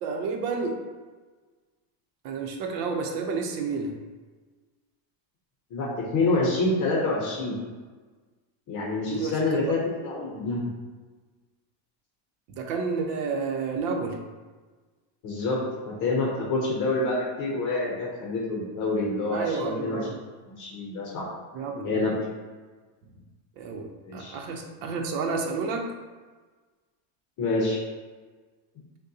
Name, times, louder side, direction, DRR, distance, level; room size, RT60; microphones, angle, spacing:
voice 1, 0.0-0.8 2.2-3.9 9.1-9.7 12.5-14.2 19.3-20.2 21.5-22.1 23.6-25.9, right 4 dB, 75° right, 3 dB, 0.8 m, -30 dB
voice 2, 5.7-7.6 8.7-10.7 15.2-20.1 20.5-21.3 21.8-22.2 24.1-24.4 27.4-27.8, left 2 dB, 40° left, -2 dB, 0.7 m, -27 dB
6.4 x 2.3 x 2.7 m, 1.4 s
cardioid pair, 170°, 49 cm